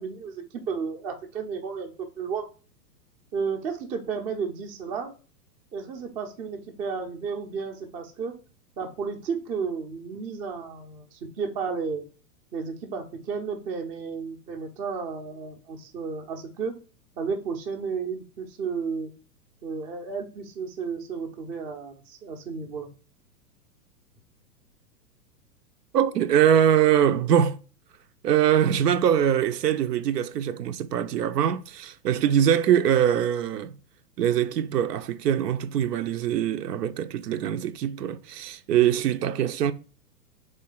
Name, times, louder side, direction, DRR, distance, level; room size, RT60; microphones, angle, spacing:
voice 1, 0.0-2.5 3.3-5.1 5.7-8.3 8.8-12.0 12.5-16.7 17.2-19.1 19.6-22.9, right 5 dB, 15° right, 0.5 m, -33 dB
voice 2, 25.9-27.6 28.2-33.8 34.2-39.7, right 9 dB, 75° right, 0.6 m, -23 dB
3.8 x 3.2 x 3.6 m
hypercardioid pair, 110°, 49 cm